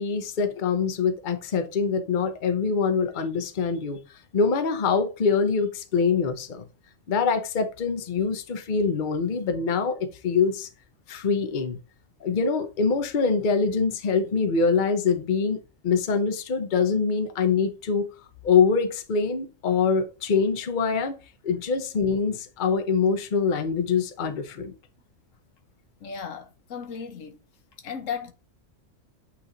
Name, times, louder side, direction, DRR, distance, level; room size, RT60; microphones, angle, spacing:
voice 1, 0.0-4.0 4.3-6.7 7.1-10.7 11.1-11.8 12.2-18.1 18.4-21.2 21.4-24.7, left 5 dB, 45° left, 0.9 m, -24 dB
voice 2, 26.0-27.4 27.8-28.3, left 7 dB, 80° left, 1.2 m, -35 dB
8.4 x 3.4 x 3.9 m
omnidirectional pair, 1.3 m